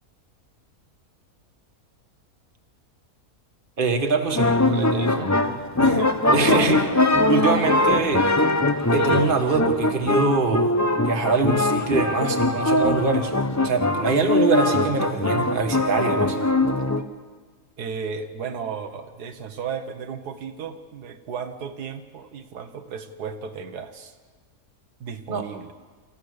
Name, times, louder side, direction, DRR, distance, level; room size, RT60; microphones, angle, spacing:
voice 1, 3.8-4.5 6.3-6.8 7.3-8.2 8.9-10.7 11.0-13.3 13.6-16.4 25.3-25.4, right 4 dB, 35° right, 3 dB, 1.6 m, -23 dB
sound 1, 4.3-17.0, left 2 dB, 20° left, 0.5 m, -22 dB
voice 2, 4.7-5.4 5.8-6.7 17.8-24.2 25.0-25.7, right 6 dB, 90° right, 6 dB, 1.7 m, -34 dB
28.5 x 14.5 x 6.6 m, 1.4 s
omnidirectional pair, 1.6 m